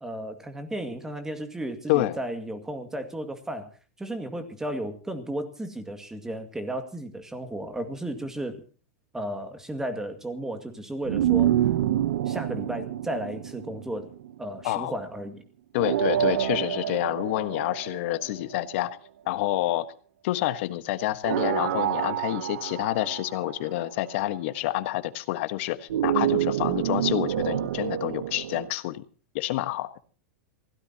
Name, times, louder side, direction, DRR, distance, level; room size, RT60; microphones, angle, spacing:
voice 1, 0.0-3.7 4.0-8.6 9.1-11.7 12.3-14.1 14.4-15.4, right 1 dB, 5° right, 7 dB, 2.1 m, -34 dB
sound 1, 11.1-14.4 15.8-18.6 21.2-23.9 25.9-28.7, right 11 dB, 80° right, 0.9 m, -27 dB
voice 2, 15.7-19.0 19.3-19.9 20.2-29.0 29.3-29.9, left 16 dB, 55° left, 11 dB, 1.4 m, -28 dB
27.0 x 16.5 x 2.9 m, 0.39 s
supercardioid pair, 145°, 8 cm